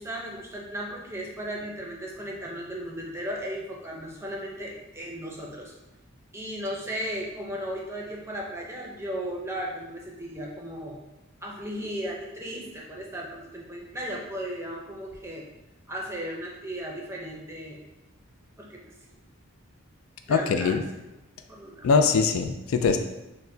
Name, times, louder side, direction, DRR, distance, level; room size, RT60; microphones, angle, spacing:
voice 1, 0.0-5.7 6.3-11.0 11.4-15.5 15.9-17.8 18.6-18.8 20.3-20.8 21.5-21.9, equal, 10° right, -2 dB, 0.5 m, -36 dB
voice 2, 20.3-20.8 21.8-23.0, left 5 dB, 70° left, 7 dB, 0.3 m, -22 dB
6.3 x 2.1 x 2.6 m, 0.95 s
head